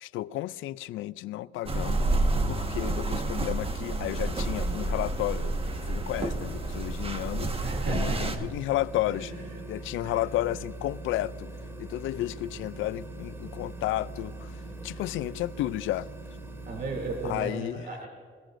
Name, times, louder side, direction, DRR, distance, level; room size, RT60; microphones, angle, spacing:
voice 1, 0.0-2.1 2.5-5.6 5.9-7.5 7.9-9.3 9.7-11.5 11.8-16.1 17.2-17.9, left 15 dB, 85° left, 0.5 m, -32 dB
sound 1, 1.7-8.4, right 2 dB, 30° right, 1.4 m, -29 dB
sound 2, 4.1-17.4, right 2 dB, 10° right, 2.1 m, -42 dB
voice 2, 7.6-8.5 9.1-9.6 10.0-10.3 16.7-18.1, right 3 dB, 50° right, 2.8 m, -35 dB
21.5 x 18.0 x 2.6 m
cardioid pair, 90°, 20 cm